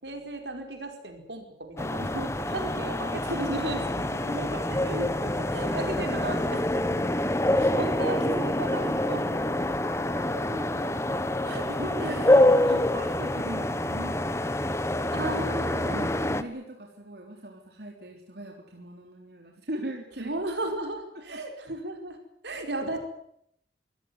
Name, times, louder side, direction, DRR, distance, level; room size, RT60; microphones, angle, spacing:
voice 1, 0.0-4.4 5.5-7.2 7.6-9.6 11.4-12.9 15.1-16.0 20.2-22.2 22.4-23.0, right 1 dB, 80° right, 4 dB, 5.0 m, -35 dB
sound 1, 1.8-16.4, left 1 dB, 15° left, 1.2 m, -26 dB
voice 2, 2.5-3.1 4.2-5.8 6.1-6.7 8.1-8.5 10.3-11.0 11.4-14.3 15.9-20.3 21.1-21.4, right 1 dB, 65° right, 1 dB, 3.8 m, -40 dB
25.0 x 16.0 x 9.7 m, 0.74 s
head